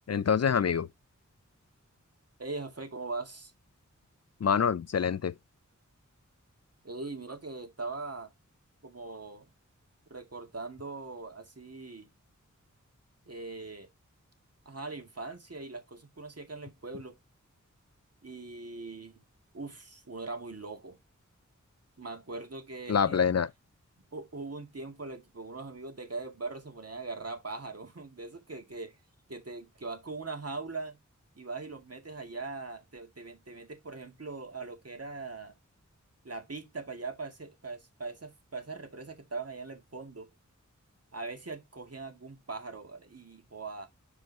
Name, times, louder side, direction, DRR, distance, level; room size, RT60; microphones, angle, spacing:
voice 1, 0.1-0.9 4.4-5.3 22.9-23.5, left 7 dB, 55° left, 0.5 m, -26 dB
voice 2, 2.4-3.5 6.8-8.3 8.8-9.5 10.1-12.1 13.3-13.9 14.7-17.2 18.2-19.2 19.5-21.0 22.0-23.2 24.1-29.0 29.3-31.0 31.4-35.5 36.2-40.3 41.1-43.9, right 3 dB, 50° right, 2.1 m, -41 dB
6.2 x 4.8 x 4.0 m
wide cardioid pair, 50°, 31 cm